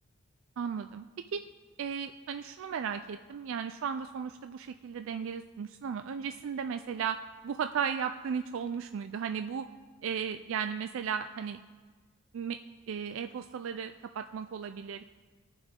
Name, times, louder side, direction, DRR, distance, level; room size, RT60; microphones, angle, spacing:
voice 1, 0.6-1.0 1.3-1.4 1.8-7.2 7.4-9.7 10.0-11.6 12.3-12.6 12.9-15.0, right 7 dB, 65° right, 9 dB, 0.3 m, -35 dB
17.5 x 6.1 x 3.7 m, 1.5 s
head